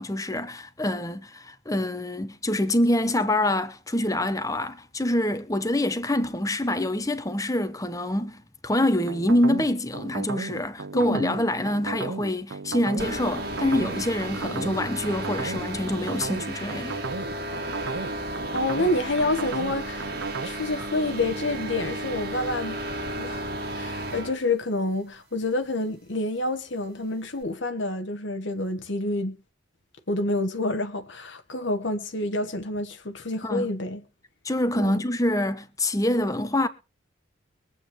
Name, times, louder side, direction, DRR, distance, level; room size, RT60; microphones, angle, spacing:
voice 1, 0.0-17.0 33.4-33.7 34.4-36.7, left 1 dB, 15° left, 1.1 m, -26 dB
sound 1, 9.1-20.5, right 4 dB, 70° right, 0.7 m, -34 dB
voice 2, 10.9-11.3 18.5-20.1 20.4-22.8 23.2-29.4 30.1-34.0 34.7-35.0, left 2 dB, 65° left, 1.2 m, -28 dB
sound 2, 13.0-24.4, right 1 dB, 50° right, 2.2 m, -34 dB
23.5 x 8.6 x 3.1 m
head